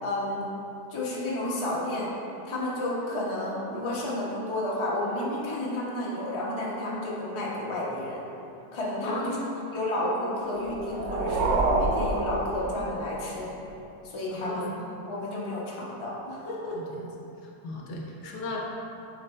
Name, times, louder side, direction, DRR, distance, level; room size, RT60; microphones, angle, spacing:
voice 1, 0.0-0.4 0.9-2.1 2.4-8.2 8.7-9.4 9.7-13.5 14.0-14.7 15.1-16.8, left 1 dB, 25° left, -6 dB, 0.7 m, -31 dB
voice 2, 9.0-9.6 14.3-14.7 16.7-17.1 17.4-18.6, left 2 dB, 70° left, -1 dB, 1.2 m, -36 dB
sound 1, 10.6-13.2, right 2 dB, 70° right, 0.9 m, -27 dB
7.3 x 4.5 x 3.2 m, 2.9 s
omnidirectional pair, 1.9 m